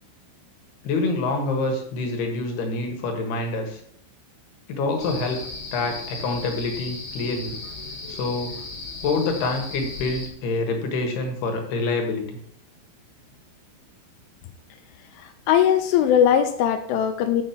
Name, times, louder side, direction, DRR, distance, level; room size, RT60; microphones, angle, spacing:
voice 1, 0.8-3.8 4.7-5.4 5.7-7.6 8.1-8.6 9.0-12.3, left 3 dB, 65° left, 3 dB, 3.1 m, -26 dB
sound 1, 5.0-10.3, left 3 dB, 35° left, 1.9 m, -36 dB
voice 2, 15.5-17.4, left 9 dB, 80° left, 9 dB, 2.9 m, -19 dB
7.5 x 7.3 x 7.3 m, 0.66 s
omnidirectional pair, 5.9 m